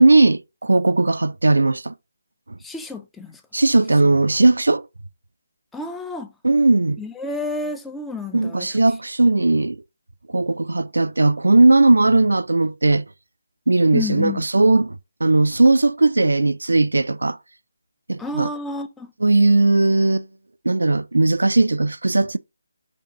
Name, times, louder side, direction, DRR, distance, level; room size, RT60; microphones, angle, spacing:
voice 1, 0.0-1.9 3.5-4.8 6.4-7.0 8.3-9.8 10.3-13.0 13.7-15.0 15.2-17.4 18.1-18.5 19.2-20.3 20.7-22.4, right 2 dB, 70° right, 0.3 m, -17 dB
voice 2, 2.6-3.4 5.7-6.3 7.0-8.7 13.9-14.4 18.2-19.1, left 2 dB, 5° left, 0.4 m, -30 dB
5.2 x 2.3 x 4.0 m
figure-of-eight pair, 150°, 0 cm